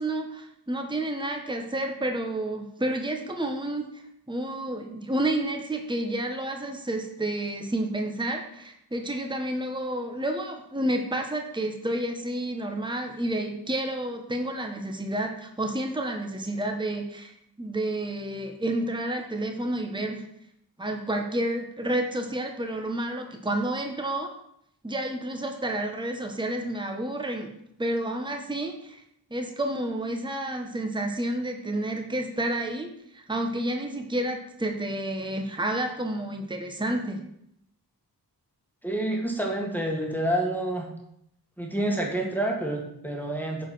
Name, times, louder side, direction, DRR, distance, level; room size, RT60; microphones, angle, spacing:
voice 1, 0.0-3.9 4.3-20.2 20.8-24.3 24.8-27.5 27.8-29.0 29.3-37.2, right 1 dB, 10° right, 3 dB, 1.2 m, -30 dB
voice 2, 38.8-40.9 41.6-43.7, right 1 dB, 5° left, 0 dB, 1.9 m, -28 dB
9.9 x 5.0 x 6.2 m, 0.75 s
wide cardioid pair, 55°, 42 cm